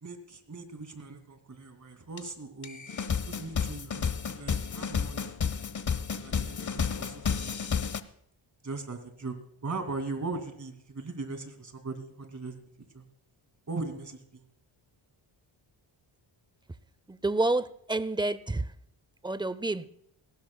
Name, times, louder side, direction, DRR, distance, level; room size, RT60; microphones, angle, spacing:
voice 1, 0.0-2.8 3.3-5.4 6.2-7.7 8.6-9.3 9.6-12.6 12.9-13.0 13.7-14.4, right 3 dB, 35° right, 7 dB, 2.4 m, -39 dB
sound 1, 2.2-2.3 2.6-8.0, left 6 dB, 40° left, 0.8 m, -31 dB
voice 2, 17.1-18.6 19.2-20.0, right 2 dB, 10° right, 17 dB, 0.4 m, -29 dB
19.0 x 16.0 x 2.2 m, 0.71 s
cardioid pair, 100°, 49 cm